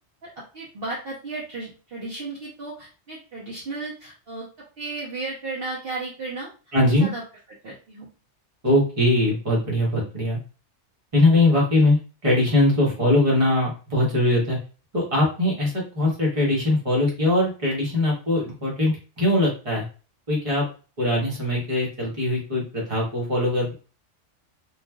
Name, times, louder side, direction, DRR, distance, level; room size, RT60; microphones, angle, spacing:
voice 1, 0.2-4.5 4.8-6.5 7.0-7.2 7.6-8.1, right 3 dB, 55° right, -6 dB, 1.0 m, -34 dB
voice 2, 6.7-7.1 8.6-10.4 11.1-14.6 14.9-19.8 20.3-20.6 21.0-23.7, left 1 dB, 30° right, -3 dB, 1.1 m, -21 dB
3.2 x 2.5 x 2.3 m, 0.35 s
omnidirectional pair, 1.3 m